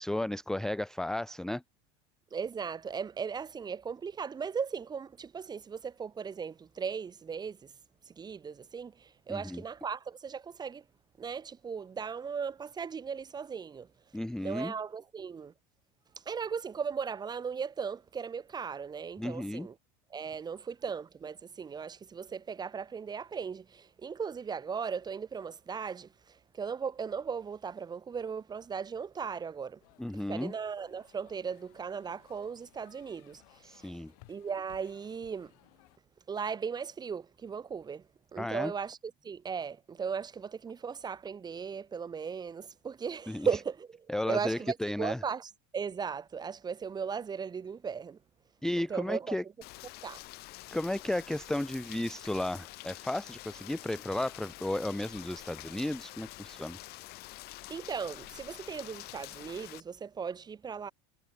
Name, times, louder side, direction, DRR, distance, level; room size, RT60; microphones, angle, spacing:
voice 1, 0.0-1.6 9.3-9.6 14.1-14.7 19.2-19.7 30.0-30.5 33.6-34.1 38.4-38.7 43.3-43.5 44.1-45.2 48.6-49.4 50.7-56.8, left 1 dB, 5° left, 0.5 m, -34 dB
voice 2, 2.3-7.7 8.1-10.8 11.2-13.9 14.4-15.5 16.2-19.7 20.1-29.8 30.3-34.0 34.3-35.5 36.3-38.1 38.3-44.0 44.3-48.2 48.8-49.5 50.0-50.2 57.7-60.9, right 6 dB, 20° right, 1.1 m, -37 dB
sound 1, 29.8-36.0, left 27 dB, 70° left, 3.6 m, -62 dB
Rain, 49.6-59.8, left 20 dB, 55° left, 3.7 m, -47 dB
supercardioid pair, 110°, 20 cm